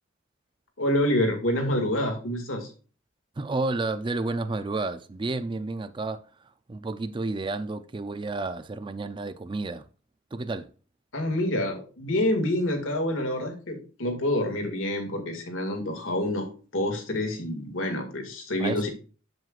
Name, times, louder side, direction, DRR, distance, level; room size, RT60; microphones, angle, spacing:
voice 1, 0.8-2.7 11.1-18.9, left 1 dB, 85° left, 2.0 m, -27 dB
voice 2, 3.4-9.9 10.3-10.7 18.6-18.9, right 3 dB, 25° right, 0.4 m, -31 dB
7.7 x 7.5 x 2.4 m
head